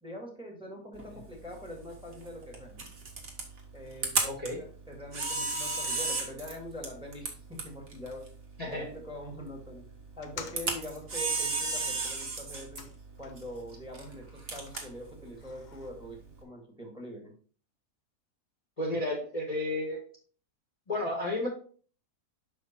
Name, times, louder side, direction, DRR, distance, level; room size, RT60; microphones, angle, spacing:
voice 1, 0.0-2.8 3.7-4.2 4.4-8.2 8.7-9.8 10.2-12.8 13.2-17.3, equal, 5° right, 1 dB, 1.8 m, -43 dB
Camera, 1.0-16.4, right 3 dB, 50° right, 1.8 m, -36 dB
voice 2, 4.2-4.6 8.6-8.9 18.8-20.0 20.9-21.5, left 1 dB, 25° left, -2 dB, 1.5 m, -32 dB
sound 1, 10.1-13.6 13.9-15.9, left 6 dB, 50° left, 0.5 m, -50 dB
6.3 x 5.1 x 4.3 m, 0.43 s
omnidirectional pair, 1.6 m